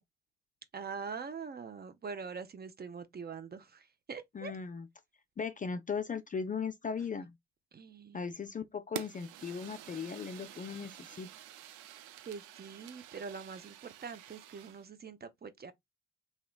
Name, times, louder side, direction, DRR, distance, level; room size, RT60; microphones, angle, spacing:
voice 1, 0.7-4.5 7.7-8.3 12.3-15.7, right 5 dB, 30° right, 0.7 m, -44 dB
voice 2, 4.3-4.9 5.4-7.3 8.1-11.3, left 6 dB, 25° left, 0.5 m, -38 dB
Fire, 9.0-14.9, right 12 dB, 65° right, 0.5 m, -48 dB
3.0 x 3.0 x 2.3 m
hypercardioid pair, 50°, 33 cm